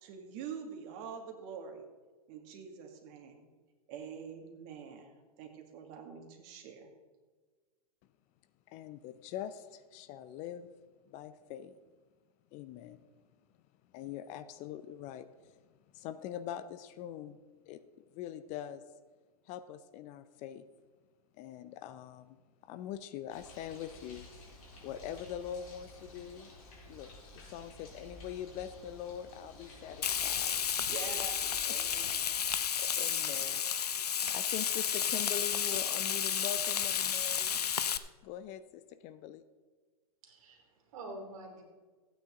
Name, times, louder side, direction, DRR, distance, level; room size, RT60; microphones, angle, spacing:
voice 1, 0.0-1.9 2.3-3.4 3.9-5.1 5.4-6.9 30.8-32.2, right 6 dB, 45° right, 3 dB, 2.2 m, -45 dB
voice 2, 8.7-10.7 11.1-11.8 12.5-13.0 13.9-15.5 15.9-17.4 17.7-17.8 18.1-18.8 19.5-20.7 21.4-24.3 24.8-26.5 26.9-30.6 31.7-31.8 32.8-34.0 34.3-37.6 38.2-39.4, left 10 dB, 40° left, 13 dB, 0.6 m, -43 dB
Bird, 23.3-32.6, left 2 dB, 65° left, 4.4 m, -53 dB
Frying (food), 30.0-38.0, left 8 dB, 85° left, 0.6 m, -32 dB
voice 3, 40.2-41.6, right 2 dB, 60° right, 4 dB, 3.0 m, -47 dB
15.5 x 9.0 x 3.8 m, 1.4 s
hypercardioid pair, 115°, 19 cm